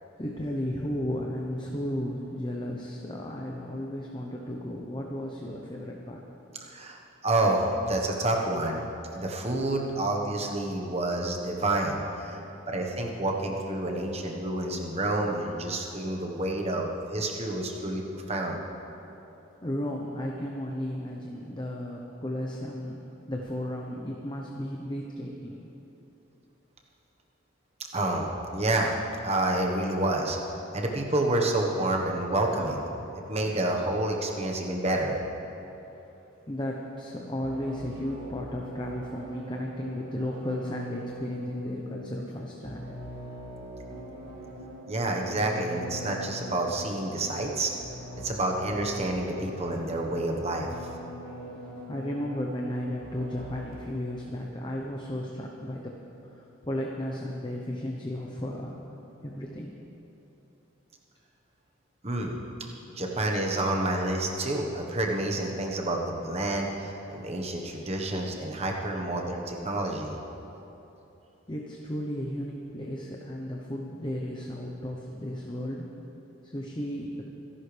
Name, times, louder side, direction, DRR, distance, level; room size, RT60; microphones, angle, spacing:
voice 1, 0.2-6.2 12.4-12.7 19.6-25.6 36.5-43.0 51.2-56.0 56.2-58.8 59.2-59.7 71.5-75.9 76.4-77.2, left 1 dB, 20° left, -1 dB, 0.9 m, -34 dB
voice 2, 6.7-8.9 9.1-18.6 27.9-28.9 29.2-30.4 30.7-32.9 33.3-35.2 44.9-47.7 48.2-50.7 62.0-62.4 63.0-70.1, right 2 dB, 30° right, 1 dB, 1.3 m, -29 dB
sound 1, 37.4-54.1, equal, 85° right, 3.7 m, -42 dB
25.5 x 11.5 x 3.4 m, 3.0 s
head